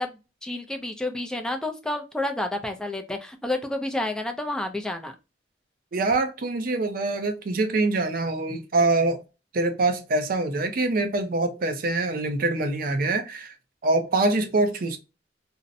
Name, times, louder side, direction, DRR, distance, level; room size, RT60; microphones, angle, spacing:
voice 1, 0.0-5.1, left 1 dB, 5° left, 0.4 m, -30 dB
voice 2, 5.9-9.2 9.5-13.5 13.8-15.0, right 2 dB, 55° right, 0.5 m, -24 dB
2.6 x 2.0 x 2.5 m
head